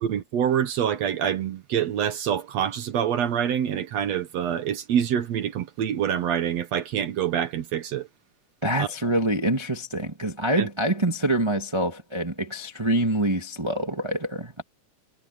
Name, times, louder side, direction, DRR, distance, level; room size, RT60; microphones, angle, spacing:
voice 1, 0.0-8.1 8.8-8.9 10.6-10.7, right 9 dB, 65° right, 1.9 m, -26 dB
voice 2, 8.6-14.6, right 1 dB, 10° right, 1.6 m, -25 dB
omnidirectional pair, 3.9 m